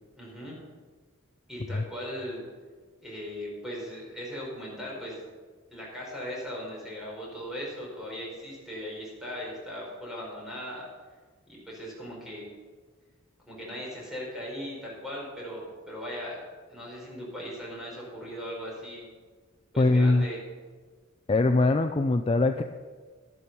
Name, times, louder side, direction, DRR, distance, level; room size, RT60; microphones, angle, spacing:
voice 1, 0.1-0.6 1.5-2.4 3.0-5.3 5.7-10.9 11.5-12.5 13.5-16.4 16.7-19.1 19.7-20.4, equal, ahead, -5 dB, 4.8 m, -38 dB
voice 2, 19.8-20.3 21.3-22.6, left 2 dB, 25° left, 6 dB, 0.4 m, -22 dB
12.5 x 11.0 x 5.5 m, 1.5 s
head